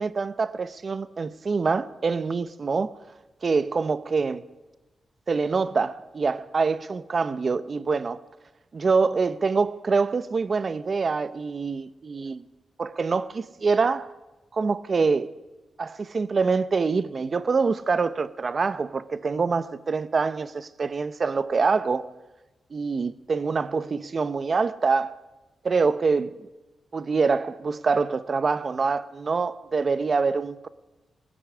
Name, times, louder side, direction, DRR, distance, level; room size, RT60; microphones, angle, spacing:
voice 1, 0.0-2.9 3.4-4.4 5.3-8.2 8.7-12.4 12.8-14.1 14.5-15.3 15.8-22.1 22.7-25.1 25.6-26.3 26.9-30.7, right 4 dB, 40° right, 0.8 m, -25 dB
21.0 x 13.5 x 9.7 m
wide cardioid pair, 135°, 0 cm